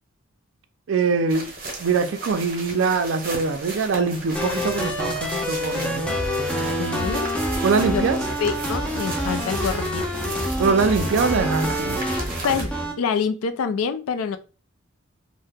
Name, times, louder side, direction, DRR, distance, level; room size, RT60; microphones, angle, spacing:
voice 1, 0.9-1.5 1.8-6.2 7.6-8.2 10.6-12.0, right 4 dB, 65° right, 0.4 m, -23 dB
sound 1, 1.3-12.6, right 2 dB, 40° right, 0.8 m, -35 dB
sound 2, 4.3-12.9, equal, 5° left, 0.4 m, -27 dB
voice 2, 6.8-7.3 7.9-8.0 8.4-10.3 12.4-12.7 13.0-14.4, left 6 dB, 90° left, 0.4 m, -26 dB
sound 3, 7.6-12.8, left 1 dB, 50° left, 1.1 m, -43 dB
2.7 x 2.1 x 3.4 m
head